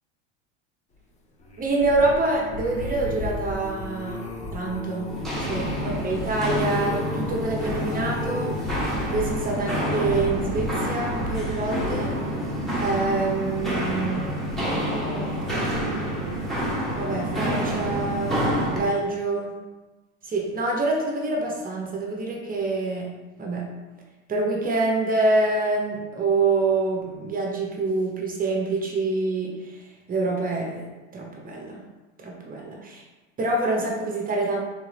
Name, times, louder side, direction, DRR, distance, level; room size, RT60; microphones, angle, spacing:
sound 1, 1.4-14.7 15.3-15.6 15.9-16.0, left 2 dB, 20° left, 0.6 m, -35 dB
voice 1, 1.6-4.2 4.5-5.1 5.5-12.1 12.8-14.3 14.7-15.6 17.0-18.4 18.7-19.5 20.2-23.1 23.4-23.6 24.3-29.8 30.1-30.9 31.1-31.8 32.2-33.0 33.4-34.6, right 3 dB, 25° right, -1 dB, 0.8 m, -26 dB
Walk footsteps, 5.1-18.9, equal, ahead, 1.1 m, -28 dB
3.6 x 3.6 x 3.3 m, 1.2 s
supercardioid pair, 110°, 36 cm